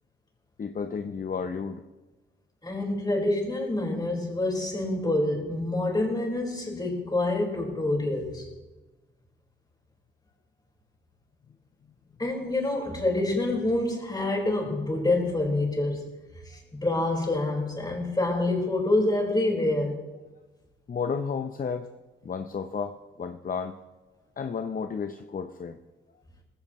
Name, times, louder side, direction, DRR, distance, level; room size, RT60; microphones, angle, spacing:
voice 1, 0.6-1.8 12.4-12.5 20.9-21.9 22.2-23.8 24.4-25.8, left 6 dB, 45° left, 8 dB, 0.7 m, -32 dB
voice 2, 2.6-8.5 12.2-16.0 16.7-20.0, left 2 dB, 20° left, -1 dB, 4.8 m, -27 dB
19.0 x 15.5 x 3.1 m, 1.2 s
cardioid pair, 80°, 20 cm